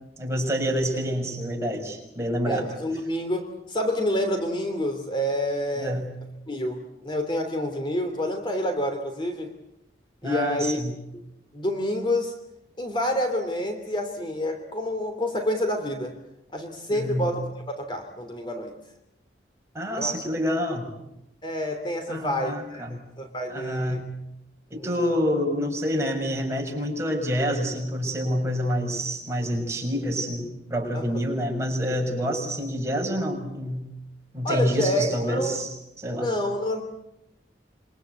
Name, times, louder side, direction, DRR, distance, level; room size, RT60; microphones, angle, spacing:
voice 1, 0.2-2.7 5.7-6.1 10.2-10.9 16.9-17.3 19.7-20.9 22.1-23.0 23.5-24.0 24.7-33.8 34.3-36.3, equal, 15° right, 1 dB, 6.7 m, -27 dB
voice 2, 2.4-6.0 6.5-9.5 10.2-10.8 11.1-11.2 11.5-12.3 12.8-16.1 16.5-17.4 17.7-18.7 20.0-20.2 21.4-22.9 23.2-24.0 24.7-24.9 30.9-31.1 34.4-35.6 36.1-36.8, left 1 dB, 25° left, 6 dB, 3.0 m, -28 dB
27.5 x 25.0 x 8.3 m, 0.86 s
head